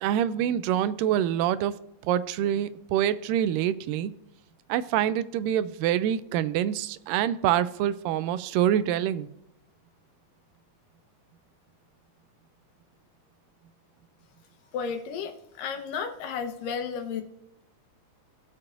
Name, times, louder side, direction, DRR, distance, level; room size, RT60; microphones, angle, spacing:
voice 1, 0.0-1.7 2.0-4.1 4.7-9.3, right 10 dB, 90° right, 14 dB, 2.2 m, -26 dB
voice 2, 14.7-17.2, left 6 dB, 85° left, 6 dB, 2.7 m, -33 dB
17.0 x 7.5 x 2.5 m, 0.83 s
omnidirectional pair, 3.8 m